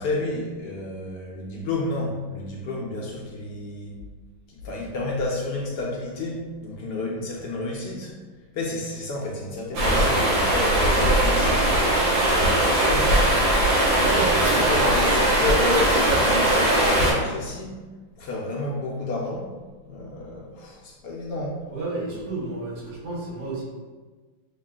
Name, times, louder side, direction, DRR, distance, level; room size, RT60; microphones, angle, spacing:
voice 1, 0.0-4.0 4.5-8.1 8.5-11.9 12.7-13.2 14.5-17.8 18.2-19.5 19.9-21.6, left 2 dB, 75° left, -2 dB, 1.0 m, -30 dB
Stream, 9.7-17.1, right 1 dB, 55° right, 1.4 m, -20 dB
voice 2, 14.0-14.6 21.7-23.6, right 3 dB, 80° right, -5 dB, 1.8 m, -31 dB
6.4 x 2.3 x 2.3 m, 1.3 s
omnidirectional pair, 2.1 m